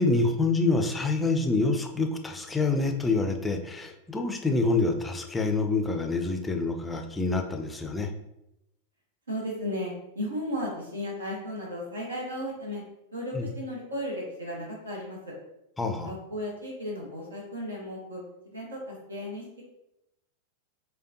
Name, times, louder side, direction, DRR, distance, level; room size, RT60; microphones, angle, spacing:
voice 1, 0.0-8.1 13.3-13.5 15.8-16.1, left 3 dB, 10° left, 4 dB, 0.5 m, -26 dB
voice 2, 9.3-12.8 13.1-15.3 16.0-19.6, equal, 75° right, -2 dB, 0.9 m, -35 dB
4.9 x 2.2 x 2.8 m, 0.86 s
figure-of-eight pair, 90°, 0 cm